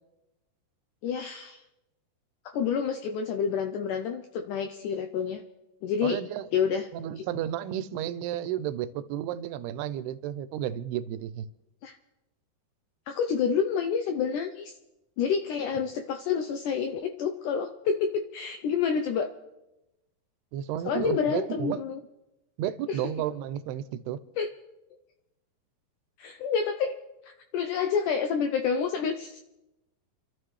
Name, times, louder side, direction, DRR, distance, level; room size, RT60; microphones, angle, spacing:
voice 1, 1.0-1.6 2.5-5.4 5.8-6.2 6.5-6.9 7.2-7.3 11.8-12.0 13.1-14.7 15.2-19.3 20.8-22.0 22.9-23.1 24.4-24.5 26.2-27.0 27.3-29.4, left 6 dB, 85° left, 1.8 m, -28 dB
voice 2, 6.0-6.5 6.9-11.5 20.5-21.8 22.6-24.2, right 11 dB, 85° right, 2.7 m, -32 dB
30.0 x 12.5 x 3.2 m
omnidirectional pair, 4.5 m